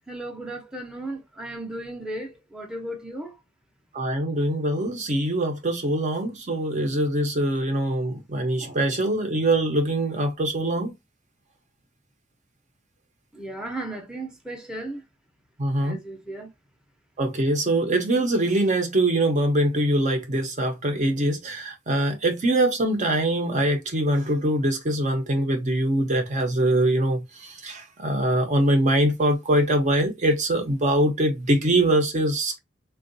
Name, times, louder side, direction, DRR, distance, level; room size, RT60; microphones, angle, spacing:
voice 1, 0.1-3.3 13.3-15.0 15.8-16.5, right 1 dB, 5° right, 0.6 m, -35 dB
voice 2, 3.9-10.9 15.6-16.0 17.2-32.6, right 1 dB, 40° right, 0.6 m, -23 dB
3.6 x 2.3 x 2.6 m
head